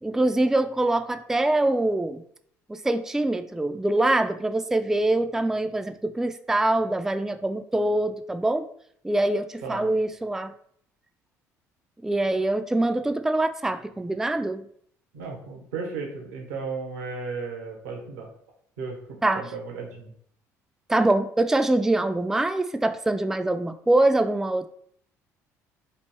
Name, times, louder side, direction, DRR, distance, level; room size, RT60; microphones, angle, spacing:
voice 1, 0.0-2.2 2.7-8.6 9.0-10.5 12.0-14.7 19.2-19.4 20.9-24.7, right 2 dB, 5° right, 9 dB, 0.3 m, -24 dB
voice 2, 9.6-9.9 15.1-18.3 18.8-20.1, right 4 dB, 80° right, 1 dB, 0.9 m, -35 dB
3.3 x 2.5 x 4.4 m, 0.65 s
hypercardioid pair, 60°, 8 cm